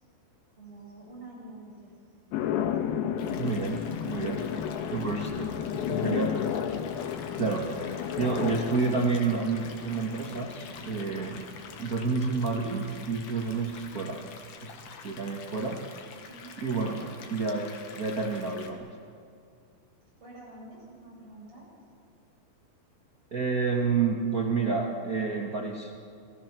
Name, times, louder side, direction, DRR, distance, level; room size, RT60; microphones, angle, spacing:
voice 1, 0.6-2.0 4.4-6.0 16.3-17.1 20.2-21.7, right 2 dB, 35° right, -5 dB, 8.1 m, -47 dB
sound 1, 2.3-12.7, left 9 dB, 80° left, 2.8 m, -33 dB
sound 2, 3.2-18.7, left 5 dB, 65° left, 3.0 m, -47 dB
voice 2, 3.4-4.4 4.9-5.3 5.9-6.4 7.3-7.9 8.2-11.4 11.8-14.2 14.6-15.8 16.6-17.0 17.3-18.9 23.3-25.9, right 4 dB, 70° right, -1 dB, 0.8 m, -29 dB
28.0 x 18.5 x 6.1 m, 2.3 s
omnidirectional pair, 4.3 m